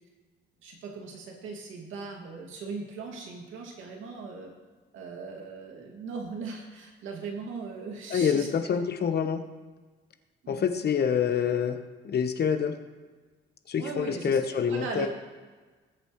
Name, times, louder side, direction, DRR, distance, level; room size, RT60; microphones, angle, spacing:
voice 1, 0.6-4.5 4.9-8.5 10.4-10.6 13.8-14.4 14.7-15.1, right 4 dB, 85° right, 0 dB, 2.4 m, -38 dB
voice 2, 8.1-9.4 10.5-11.8 12.0-12.7 13.7-15.1, left 7 dB, 55° left, 8 dB, 1.1 m, -26 dB
19.0 x 8.0 x 3.2 m, 1.3 s
cardioid pair, 90°, 20 cm